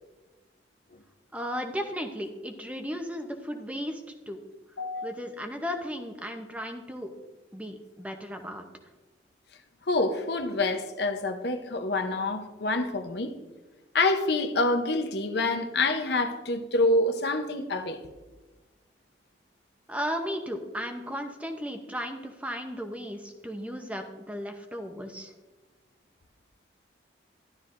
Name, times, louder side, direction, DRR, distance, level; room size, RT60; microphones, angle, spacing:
voice 1, 1.3-4.4 5.0-7.1 7.5-8.6 19.9-25.3, equal, 5° right, 4 dB, 0.7 m, -35 dB
voice 2, 4.8-5.1 9.9-13.3 13.9-18.0, left 2 dB, 60° left, 7 dB, 0.8 m, -27 dB
13.0 x 11.5 x 2.6 m, 1.2 s
head